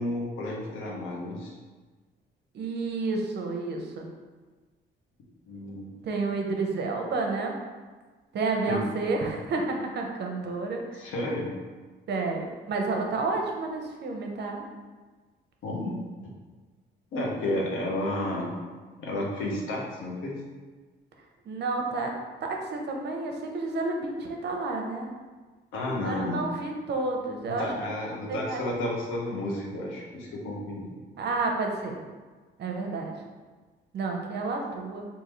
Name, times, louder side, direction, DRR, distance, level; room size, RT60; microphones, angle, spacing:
voice 1, 0.0-1.6 5.5-5.9 8.7-8.8 10.9-11.5 15.6-16.0 17.1-18.5 19.0-20.3 25.7-26.4 27.6-30.9, left 1 dB, 85° left, -2 dB, 0.9 m, -31 dB
voice 2, 2.5-4.1 6.0-7.5 8.3-11.0 12.1-14.7 21.5-22.1 22.4-25.1 26.0-27.7 28.3-29.0 31.2-32.0 32.6-33.1 33.9-35.1, right 3 dB, 60° right, 2 dB, 0.6 m, -30 dB
3.6 x 2.7 x 3.0 m, 1.4 s
cardioid pair, 90°, 20 cm